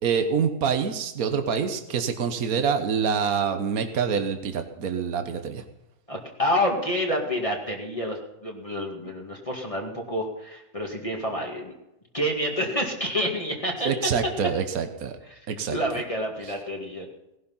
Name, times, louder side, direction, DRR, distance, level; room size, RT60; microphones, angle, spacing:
voice 1, 0.0-5.6 13.8-15.2 15.5-15.8, right 6 dB, 65° right, 7 dB, 1.6 m, -26 dB
voice 2, 6.1-11.7 12.1-13.9 15.3-15.4 15.7-17.1, equal, 20° left, 0 dB, 2.3 m, -28 dB
18.0 x 11.5 x 5.7 m, 0.91 s
omnidirectional pair, 1.6 m